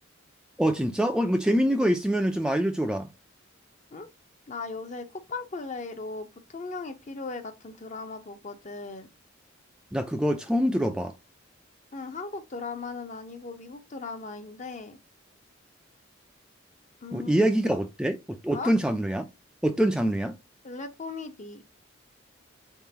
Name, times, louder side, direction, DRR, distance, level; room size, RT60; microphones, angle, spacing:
voice 1, 0.6-3.1 9.9-11.1 17.1-19.3 19.6-20.4, equal, 5° right, 0.3 m, -25 dB
voice 2, 4.5-9.1 11.9-15.0 17.0-17.5 18.5-18.7 20.6-21.6, left 4 dB, 40° left, 0.6 m, -38 dB
3.9 x 3.7 x 2.8 m
head